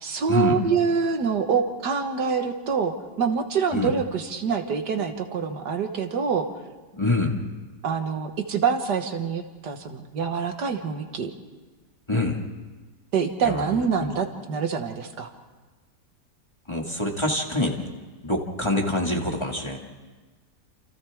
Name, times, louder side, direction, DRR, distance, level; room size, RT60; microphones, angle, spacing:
voice 1, 0.0-6.5 7.8-11.3 13.1-15.3, right 6 dB, 75° right, 6 dB, 2.0 m, -26 dB
voice 2, 6.9-7.4 12.1-12.4 13.4-14.1 16.7-17.8 18.2-19.8, left 2 dB, 15° left, 0 dB, 1.9 m, -25 dB
29.0 x 28.0 x 3.6 m, 1.3 s
omnidirectional pair, 1.8 m